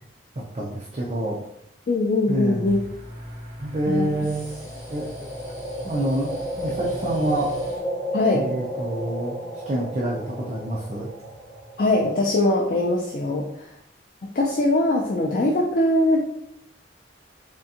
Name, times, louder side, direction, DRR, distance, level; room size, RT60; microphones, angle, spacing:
voice 1, 0.5-1.4 2.3-2.8 3.6-4.5 4.9-5.1 5.8-7.6 8.3-9.4 9.7-11.1, right 1 dB, 35° right, -2 dB, 0.5 m, -27 dB
voice 2, 1.9-2.8 3.9-4.1 8.1-8.5 11.8-13.7 14.3-16.2, left 2 dB, 50° left, 0 dB, 0.4 m, -21 dB
sound 1, 2.7-7.8, equal, 15° right, 1.5 m, -41 dB
sound 2, 4.3-12.3, right 1 dB, 15° left, 0.8 m, -32 dB
3.6 x 3.3 x 2.8 m, 0.76 s
head